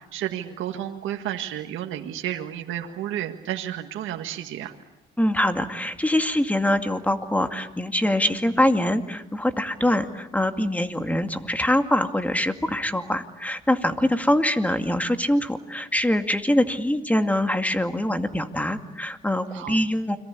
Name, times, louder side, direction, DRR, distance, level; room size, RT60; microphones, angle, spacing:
voice 1, 0.0-4.7 9.8-10.0 19.5-19.8, right 11 dB, 85° right, 4 dB, 1.8 m, -32 dB
voice 2, 5.2-20.2, left 1 dB, 5° left, 7 dB, 2.3 m, -24 dB
29.5 x 23.0 x 8.5 m, 0.94 s
cardioid pair, 90°, 20 cm